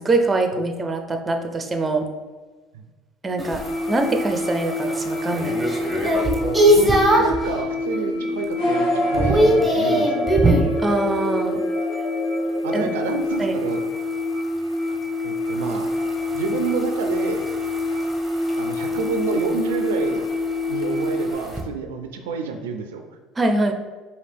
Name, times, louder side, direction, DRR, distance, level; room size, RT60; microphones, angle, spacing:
voice 1, 0.0-2.1 3.2-3.6 3.9-5.7 10.8-11.6 12.7-12.9 13.4-13.5 23.4-23.7, right 2 dB, 25° right, 5 dB, 0.5 m, -23 dB
sound 1, 3.4-7.4 7.9-8.4 8.6-10.7 13.2-21.6, right 1 dB, 5° right, 0.9 m, -24 dB
sound 2, 3.6-21.3, left 2 dB, 30° left, 1.4 m, -27 dB
voice 2, 6.7-10.5 12.6-13.8 15.2-15.9 16.3-17.4 18.6-20.3 20.7-23.0, right 5 dB, 85° right, 6 dB, 0.4 m, -28 dB
sound 3, 8.5-13.4, left 1 dB, 70° left, 1.3 m, -28 dB
4.9 x 2.4 x 3.4 m, 1.3 s
hypercardioid pair, 75°, 0 cm